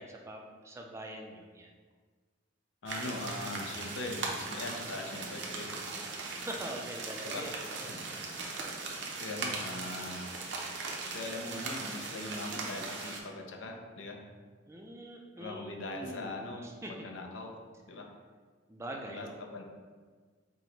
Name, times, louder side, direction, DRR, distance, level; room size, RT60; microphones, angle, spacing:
voice 1, 0.0-1.7 6.3-8.3 14.7-16.9 18.7-19.5, right 1 dB, 15° right, 1 dB, 0.3 m, -44 dB
voice 2, 2.8-5.7 7.2-7.5 9.2-10.4 11.1-14.2 15.4-17.5 17.9-18.1 19.1-19.6, left 2 dB, 75° left, 2 dB, 0.5 m, -41 dB
sound 1, 2.9-13.2, right 3 dB, 65° right, 0.6 m, -39 dB
4.5 x 2.1 x 3.9 m, 1.5 s
head